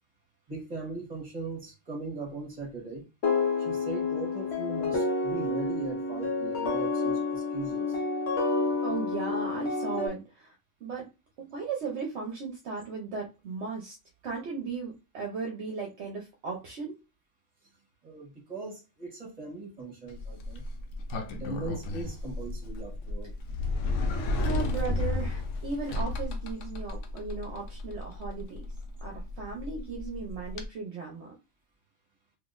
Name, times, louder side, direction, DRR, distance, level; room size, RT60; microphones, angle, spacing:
voice 1, 0.5-3.0 3.6-8.0 18.0-20.6 21.4-23.3, right 3 dB, 35° right, 1.4 m, -39 dB
sound 1, 3.2-10.1, left 3 dB, 65° left, 1.1 m, -29 dB
voice 2, 8.8-10.5 10.8-11.1 11.4-13.9 14.2-16.9 24.4-28.6 29.0-31.3, right 4 dB, 65° right, 1.0 m, -36 dB
Sliding door, 20.1-30.7, left 2 dB, 85° left, 1.0 m, -33 dB
3.7 x 2.6 x 2.5 m
omnidirectional pair, 1.3 m